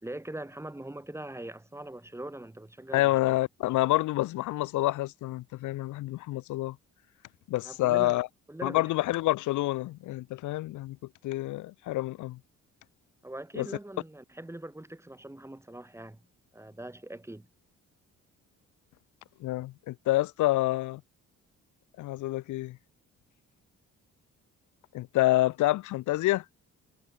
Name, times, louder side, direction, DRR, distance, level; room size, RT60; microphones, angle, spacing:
voice 1, 0.0-3.1 7.6-8.2 8.5-8.9 13.2-16.2 16.5-17.5, right 1 dB, 10° right, 4.1 m, -42 dB
voice 2, 2.9-6.8 7.5-8.3 8.6-11.0 11.2-12.4 13.6-13.7 19.4-21.0 22.0-22.8 24.9-26.4, left 17 dB, 75° left, 0.6 m, -28 dB
cardioid pair, 90°, 30 cm